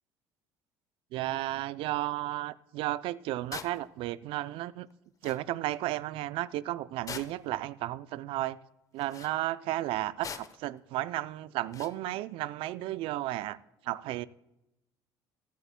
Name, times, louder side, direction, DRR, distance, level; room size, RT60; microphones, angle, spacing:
voice 1, 1.1-4.9 5.2-8.6 8.9-13.6 13.8-14.3, right 15 dB, 70° right, 0.4 m, -33 dB
sound 1, 3.5-3.8 4.9-5.0 5.2-5.4 7.1-7.5 9.0-9.3 10.2-10.7 11.7-12.0, left 6 dB, 35° left, 0.8 m, -42 dB
15.0 x 11.5 x 2.2 m
supercardioid pair, 80°, 10 cm